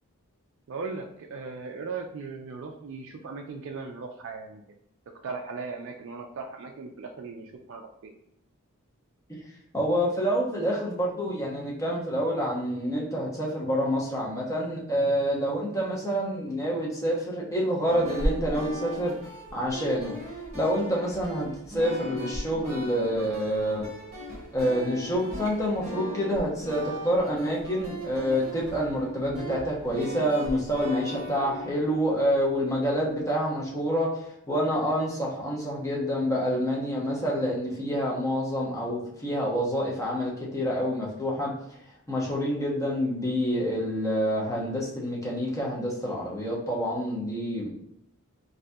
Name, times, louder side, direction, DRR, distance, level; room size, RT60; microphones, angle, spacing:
voice 1, 0.7-4.6 5.2-8.1, right 4 dB, 55° right, 2 dB, 0.3 m, -38 dB
voice 2, 9.7-19.1 19.5-20.2 20.5-23.8 24.5-41.5 42.1-47.7, equal, 15° left, -4 dB, 0.7 m, -27 dB
sound 1, 17.8-33.3, equal, 30° right, 1.3 m, -37 dB
3.8 x 2.7 x 2.2 m, 0.73 s
head